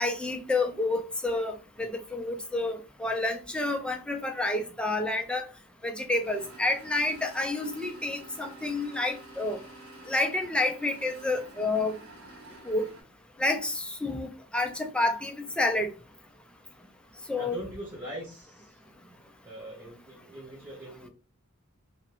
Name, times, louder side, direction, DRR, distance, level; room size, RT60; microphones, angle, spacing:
voice 1, 0.0-5.5 5.8-9.6 10.1-12.0 12.7-12.9 13.4-15.9 17.3-17.6, left 2 dB, 5° left, 0.3 m, -29 dB
sound 1, 6.2-13.0, right 2 dB, 75° right, 0.9 m, -49 dB
voice 2, 17.4-18.8 19.4-21.1, equal, 15° right, 0.8 m, -41 dB
2.4 x 2.0 x 2.9 m
head